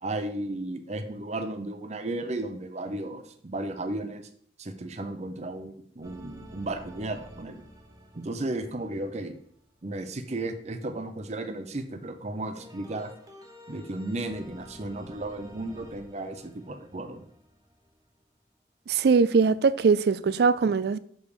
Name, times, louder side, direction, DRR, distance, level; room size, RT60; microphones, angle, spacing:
voice 1, 0.0-4.2 4.6-7.6 8.1-9.4 9.8-13.1 13.7-17.2, right 2 dB, 40° right, 0.7 m, -34 dB
sound 1, 6.0-10.1 12.5-18.2, equal, 20° right, 1.0 m, -50 dB
voice 2, 18.9-21.0, right 5 dB, 65° right, 0.4 m, -21 dB
6.3 x 5.2 x 5.0 m
head